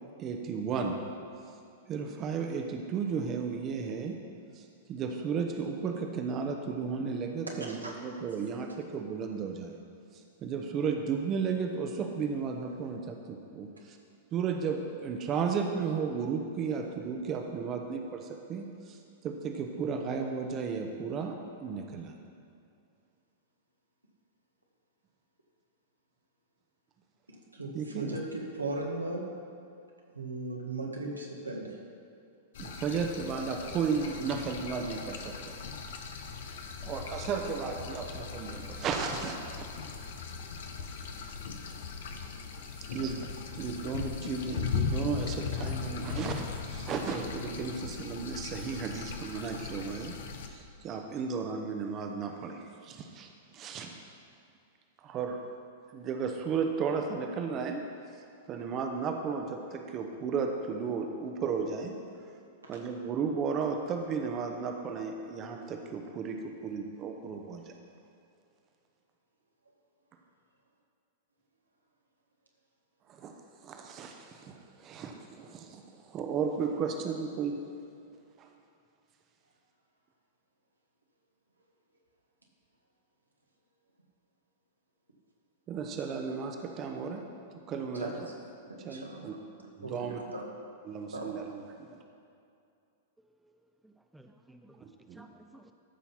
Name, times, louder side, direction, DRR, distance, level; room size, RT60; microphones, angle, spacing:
voice 1, 0.2-1.0 1.9-4.2 4.5-9.8 10.1-14.0 14.3-22.1 27.7-28.1 32.6-35.5 36.8-39.6 42.9-43.3 43.5-50.1 50.5-53.9 55.0-55.4 55.9-57.8 58.5-61.9 62.7-67.8 73.1-73.3 73.6-77.6 78.4-78.5 85.7-87.3 87.7-88.1 88.8-89.3 89.8-90.2 90.9-92.0 94.8-95.2, right 5 dB, 30° right, 1.0 m, -34 dB
voice 2, 27.3-29.3 30.1-31.8 42.8-43.2 87.9-88.2 88.7-89.4 89.8-90.4 91.1-91.4, right 2 dB, 90° right, 1.9 m, -38 dB
sound 1, 32.5-50.5, left 5 dB, 60° left, 1.0 m, -38 dB
voice 3, 93.2-95.7, right 2 dB, 5° right, 0.5 m, -57 dB
13.5 x 5.7 x 5.8 m
figure-of-eight pair, 100°, 0 cm